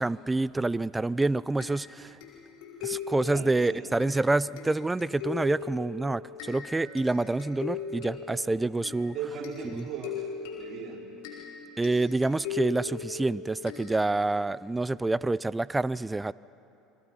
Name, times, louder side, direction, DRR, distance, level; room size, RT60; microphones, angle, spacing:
voice 1, 0.0-2.2 2.8-9.1 9.7-9.9 11.8-16.3, right 2 dB, 15° right, 20 dB, 0.5 m, -27 dB
sound 1, 1.6-14.4, left 6 dB, 75° left, 5.1 m, -40 dB
voice 2, 3.3-3.9 9.1-10.3 10.5-11.0, right 6 dB, 50° right, -1 dB, 4.5 m, -38 dB
Chink clink, 6.6-11.1, right 1 dB, 20° left, 4.7 m, -55 dB
29.0 x 22.0 x 5.7 m, 3.0 s
hypercardioid pair, 75°, 0 cm